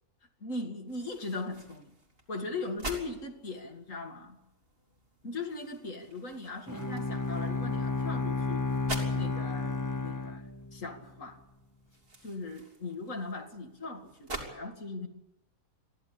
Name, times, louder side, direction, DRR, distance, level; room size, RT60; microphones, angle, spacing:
voice 1, 0.4-2.0 2.3-4.4 5.2-8.7 9.1-11.4 12.2-15.1, left 3 dB, 65° left, 4 dB, 2.7 m, -39 dB
sound 1, 0.9-14.5, right 2 dB, 40° right, 3.5 m, -47 dB
Bowed string instrument, 6.7-11.1, left 3 dB, 20° left, 0.5 m, -32 dB
23.0 x 14.5 x 8.6 m, 0.89 s
omnidirectional pair, 1.5 m